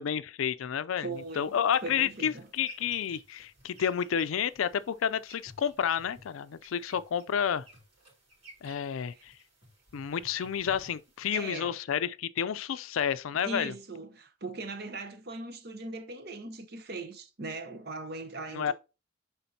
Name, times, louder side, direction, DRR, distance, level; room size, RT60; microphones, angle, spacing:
voice 1, 0.0-1.1 1.4-7.6 8.6-9.3 9.9-13.7 18.5-18.7, left 8 dB, 90° left, 0.4 m, -30 dB
voice 2, 1.0-2.5 9.1-9.2 11.3-11.8 13.4-18.7, right 3 dB, 50° right, 0.9 m, -40 dB
sound 1, 1.1-11.5, right 1 dB, 30° right, 3.7 m, -54 dB
10.0 x 3.8 x 2.7 m
head